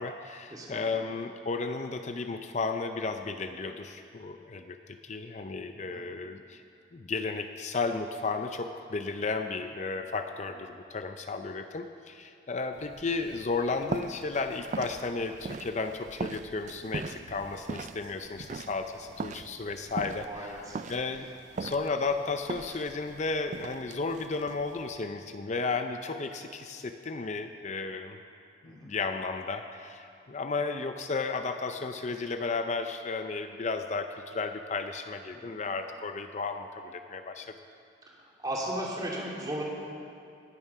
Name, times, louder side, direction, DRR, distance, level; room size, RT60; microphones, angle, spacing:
voice 1, 0.0-6.6 6.9-20.6 20.9-21.3 21.6-28.2 28.6-37.5, left 4 dB, 40° left, 7 dB, 0.5 m, -33 dB
sound 1, 12.7-25.0, right 4 dB, 40° right, 0.3 m, -41 dB
voice 2, 20.2-20.8 28.6-28.9 35.3-35.6 38.2-39.6, right 1 dB, 20° right, -3 dB, 2.7 m, -36 dB
20.0 x 9.5 x 5.6 m, 2.5 s
head